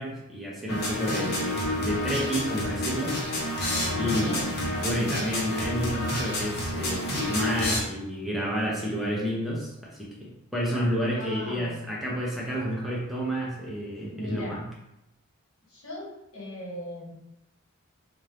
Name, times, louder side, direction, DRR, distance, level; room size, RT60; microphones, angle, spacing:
voice 1, 0.0-4.4 4.8-14.7, equal, ahead, -5 dB, 0.6 m, -30 dB
sound 1, 0.7-7.8, left 1 dB, 50° left, 0.9 m, -29 dB
voice 2, 4.0-4.5 11.1-11.8 14.1-14.6 15.7-17.1, left 1 dB, 80° left, -4 dB, 1.3 m, -38 dB
4.1 x 2.6 x 3.3 m, 0.87 s
head